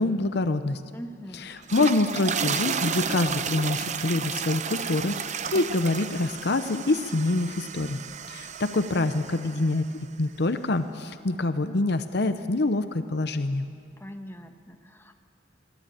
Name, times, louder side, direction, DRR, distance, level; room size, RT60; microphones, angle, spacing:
voice 1, 0.0-0.8 1.7-5.2 5.5-8.0 8.3-9.8 10.2-13.7, left 2 dB, 55° left, 10 dB, 0.8 m, -25 dB
voice 2, 0.9-1.5 14.0-15.2, equal, 10° left, 5 dB, 1.2 m, -42 dB
sound 1, 1.5-9.8, right 6 dB, 40° right, 0.7 m, -32 dB
23.5 x 15.5 x 8.8 m, 2.4 s
head